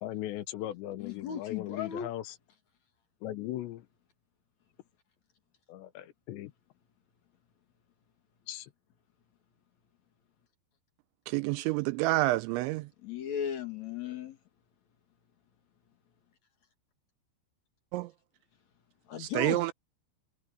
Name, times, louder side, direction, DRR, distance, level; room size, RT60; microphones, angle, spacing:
voice 1, 0.0-2.3 3.2-3.9 5.7-6.5 8.5-8.7, left 14 dB, 75° left, 3.1 m, -38 dB
voice 2, 1.0-2.1 13.0-14.4 19.1-19.7, left 8 dB, 55° left, 2.0 m, -36 dB
voice 3, 11.3-12.8 17.9-18.1 19.2-19.7, right 19 dB, 85° right, 2.7 m, -28 dB
omnidirectional pair, 5.5 m